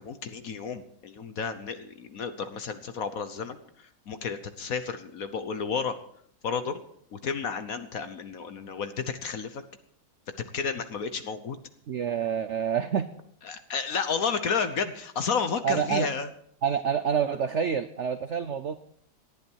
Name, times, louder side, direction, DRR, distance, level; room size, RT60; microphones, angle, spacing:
voice 1, 0.0-3.6 4.1-6.0 6.4-6.8 7.1-9.6 10.5-11.6 13.5-16.3, left 5 dB, 55° left, 10 dB, 1.2 m, -31 dB
voice 2, 11.9-13.1 15.6-16.1 16.6-18.7, right 7 dB, 70° right, 11 dB, 0.6 m, -27 dB
19.0 x 12.0 x 4.6 m, 0.66 s
omnidirectional pair, 2.1 m